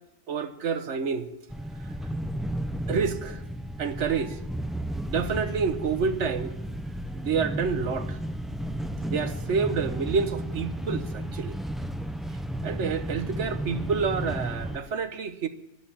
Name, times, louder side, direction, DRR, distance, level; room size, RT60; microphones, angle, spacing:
voice 1, 0.3-1.3 1.8-1.9 2.9-3.4 3.8-4.4 5.1-6.6 7.1-8.2 9.0-11.6 12.6-15.5, right 5 dB, 75° right, 1.3 m, -28 dB
sound 1, 1.5-14.8, right 1 dB, ahead, 0.6 m, -33 dB
12.5 x 11.5 x 7.3 m
omnidirectional pair, 1.2 m